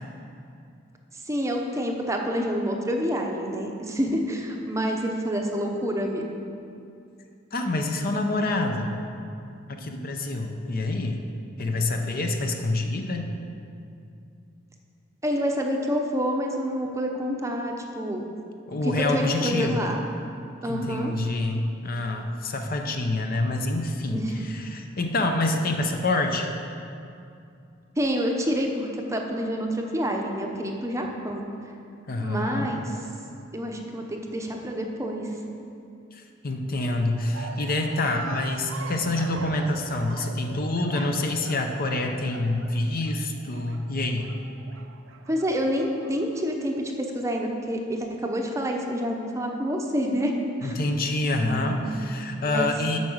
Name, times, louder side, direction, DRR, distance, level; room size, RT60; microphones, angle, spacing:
voice 1, 1.3-6.3 15.2-18.2 18.8-20.0 20.6-21.1 24.1-24.5 28.0-31.4 32.2-33.0 33.5-35.3 45.3-50.3 50.6-50.8 51.4-52.1 52.4-52.7, equal, 15° right, 1 dB, 0.7 m, -28 dB
voice 2, 7.5-9.0 9.7-11.2 11.6-13.3 18.7-19.8 20.7-26.5 32.1-32.7 36.1-44.3 50.6-53.0, left 2 dB, 45° left, 4 dB, 0.7 m, -27 dB
sound 1, 37.3-46.5, right 4 dB, 80° right, 0.6 m, -42 dB
8.3 x 5.9 x 6.4 m, 2.5 s
head